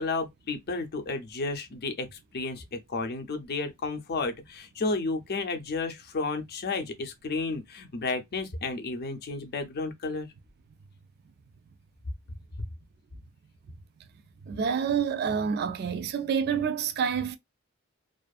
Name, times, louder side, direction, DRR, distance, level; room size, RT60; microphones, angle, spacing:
voice 1, 0.0-10.3 12.6-12.7, left 3 dB, 45° left, 0.5 m, -32 dB
voice 2, 14.5-17.4, right 7 dB, 45° right, 0.4 m, -28 dB
2.5 x 2.4 x 2.3 m
head